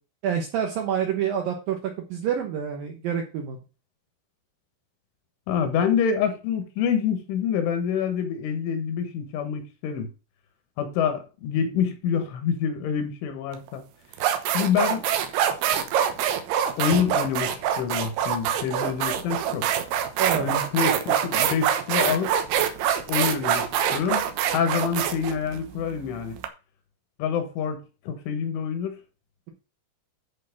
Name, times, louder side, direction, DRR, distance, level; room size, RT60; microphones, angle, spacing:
voice 1, 0.2-1.8 2.1-3.6 20.2-20.5, right 8 dB, 90° right, 2.0 m, -27 dB
voice 2, 5.5-10.1 10.8-13.8 14.5-15.1 16.8-19.7 20.4-22.4 23.1-24.2 24.5-26.4 27.2-27.8 28.1-29.0, left 7 dB, 75° left, 3.6 m, -26 dB
sound 1, 13.5-13.7 14.1-26.5, right 9 dB, 75° right, 2.5 m, -25 dB
11.0 x 4.5 x 5.8 m
omnidirectional pair, 5.8 m